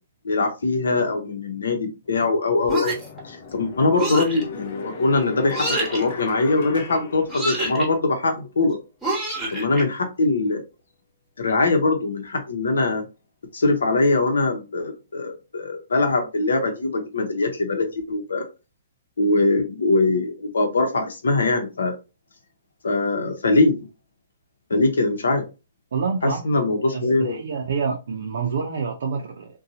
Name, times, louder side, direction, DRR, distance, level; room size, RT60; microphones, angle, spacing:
voice 1, 0.2-2.9 3.2-8.8 9.5-10.6 11.4-13.0 13.5-18.5 19.2-21.9 22.8-23.8 24.7-25.4 26.2-27.4, left 3 dB, 85° left, 0.8 m, -22 dB
sound 1, 2.1-2.2 2.8-8.0, left 4 dB, 50° left, 0.5 m, -38 dB
sound 2, 2.7-3.2 4.0-4.4 5.5-6.0 7.3-7.9 9.0-9.8, right 1 dB, 5° right, 1.1 m, -27 dB
voice 2, 25.9-26.4 26.9-29.5, right 5 dB, 70° right, 0.5 m, -27 dB
2.6 x 2.2 x 2.7 m
hypercardioid pair, 140°, 0 cm